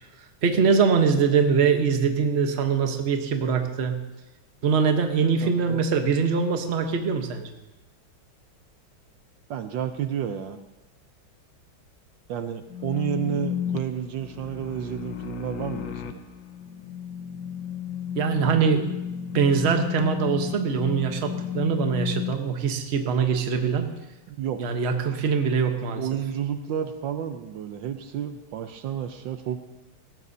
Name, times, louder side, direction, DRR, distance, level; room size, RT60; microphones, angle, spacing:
voice 1, 0.4-4.0 4.6-7.5 18.1-18.9 19.3-23.9 24.6-26.0, right 6 dB, 40° right, 5 dB, 1.1 m, -23 dB
voice 2, 5.4-5.8 9.5-10.6 12.3-16.2 24.3-24.6 26.0-29.6, right 9 dB, 75° right, 8 dB, 1.4 m, -31 dB
sound 1, 12.7-22.3, left 9 dB, 70° left, 1.2 m, -33 dB
18.5 x 15.0 x 2.7 m, 1.0 s
omnidirectional pair, 2.2 m